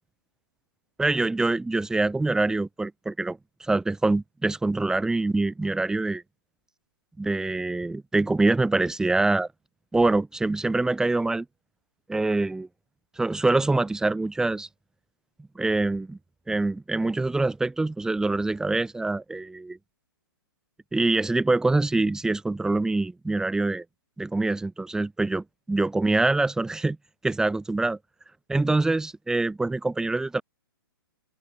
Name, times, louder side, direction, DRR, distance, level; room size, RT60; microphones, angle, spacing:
voice 1, 1.0-3.4 3.7-6.2 7.2-9.5 9.9-11.4 12.1-12.7 13.2-14.7 15.5-16.2 16.5-19.8 20.9-23.8 24.2-27.0 27.2-28.0 28.5-30.4, right 2 dB, 5° right, 3.3 m, -25 dB
open air
hypercardioid pair, 130°, 13 cm